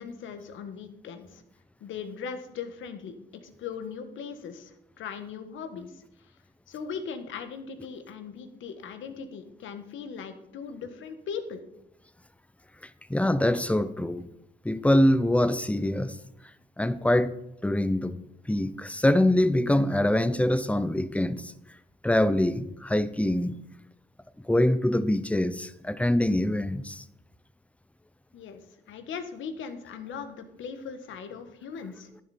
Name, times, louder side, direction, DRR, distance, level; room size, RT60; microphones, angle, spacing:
voice 1, 0.0-1.4 1.8-6.0 6.7-11.6 28.3-28.6 28.9-32.1, left 6 dB, 75° left, 1.5 m, -39 dB
voice 2, 13.1-14.3 14.6-16.2 16.8-17.4 17.6-21.5 22.0-23.6 24.5-27.0, left 1 dB, 5° left, 0.7 m, -24 dB
11.0 x 10.5 x 4.3 m
cardioid pair, 90°, 20 cm